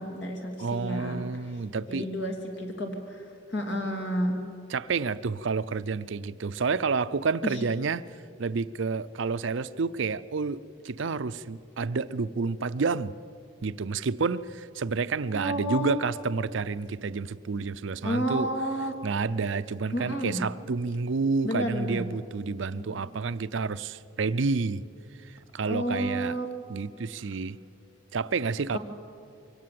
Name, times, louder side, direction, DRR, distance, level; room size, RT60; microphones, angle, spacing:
voice 1, 0.0-1.2 1.9-3.2 3.5-4.4 7.4-7.6 15.3-16.0 18.0-18.9 19.9-20.4 21.4-22.0 22.7-23.0 25.7-26.5 28.7-28.8, equal, 60° left, 3 dB, 3.1 m, -30 dB
voice 2, 0.6-2.1 4.7-8.1 8.4-13.1 13.6-18.5 19.0-24.8 25.2-26.4 26.7-27.6 28.1-28.8, right 4 dB, 60° right, 15 dB, 0.5 m, -29 dB
23.0 x 18.0 x 7.7 m, 2.6 s
head